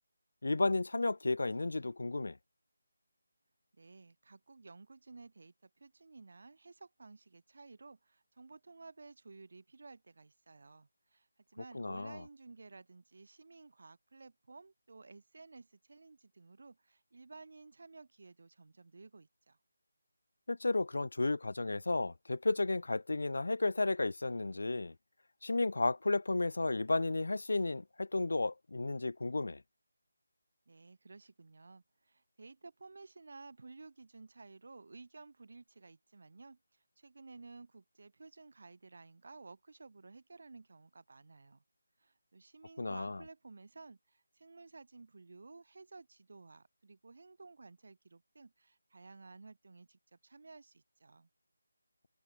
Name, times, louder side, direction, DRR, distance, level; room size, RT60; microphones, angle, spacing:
voice 1, 0.4-2.4 11.7-12.2 20.5-24.9 25.4-29.6 42.8-43.2, left 2 dB, 65° left, 0.5 m, -33 dB
voice 2, 3.8-19.6 30.7-36.6 37.0-41.6 42.0-51.3, right 3 dB, 55° right, 4.3 m, -55 dB
figure-of-eight pair, 155°, 0 cm